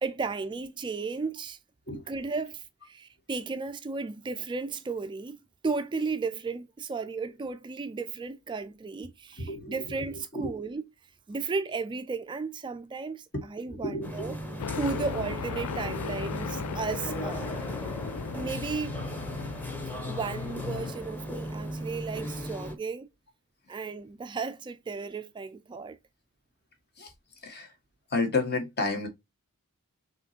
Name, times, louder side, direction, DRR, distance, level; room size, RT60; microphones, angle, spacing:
voice 1, 0.0-1.6 2.1-5.4 5.6-10.8 11.3-14.3 14.8-17.5 18.3-18.9 20.1-23.1 23.7-26.0, right 4 dB, 20° right, 0.3 m, -34 dB
voice 2, 9.4-10.6 13.3-14.4 14.7-15.0 27.0-27.1 27.4-27.7 28.1-29.1, left 2 dB, 50° left, 1.4 m, -32 dB
sound 1, 14.0-22.8, right 1 dB, 10° left, 0.9 m, -37 dB
sound 2, 14.6-20.9, left 7 dB, 85° left, 0.4 m, -36 dB
5.7 x 3.1 x 2.7 m
head